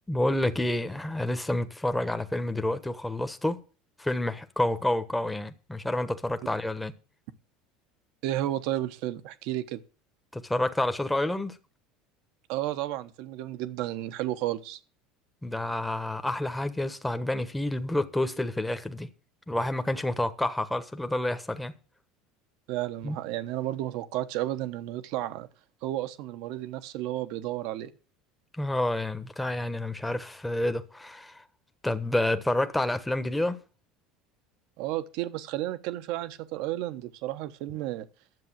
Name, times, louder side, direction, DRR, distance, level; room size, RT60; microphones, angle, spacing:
voice 1, 0.1-3.6 4.0-6.9 10.3-11.6 15.4-19.1 19.5-21.7 23.0-23.2 28.6-31.4 31.8-33.6, left 1 dB, 5° left, 1.2 m, -29 dB
voice 2, 8.2-9.8 12.5-14.8 22.7-25.5 25.8-27.9 34.8-38.1, right 14 dB, 70° right, 1.1 m, -32 dB
11.0 x 7.4 x 7.4 m
supercardioid pair, 90°, 0 cm